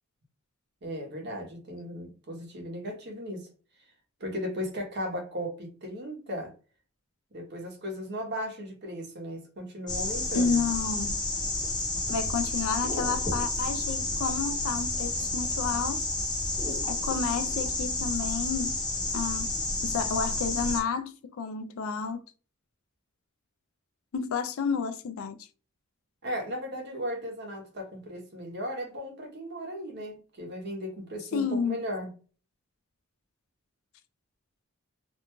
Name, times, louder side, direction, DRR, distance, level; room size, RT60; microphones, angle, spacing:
voice 1, 0.8-3.5 4.2-6.5 7.3-10.6 26.2-32.1, equal, 50° right, 0.9 m, -36 dB
sound 1, 9.9-20.8, left 2 dB, 20° left, 0.7 m, -30 dB
voice 2, 10.3-11.1 12.1-16.0 16.9-18.8 19.1-19.5 19.8-22.2 24.1-25.4 31.3-31.8, left 5 dB, 70° left, 0.4 m, -30 dB
2.5 x 2.2 x 2.9 m
head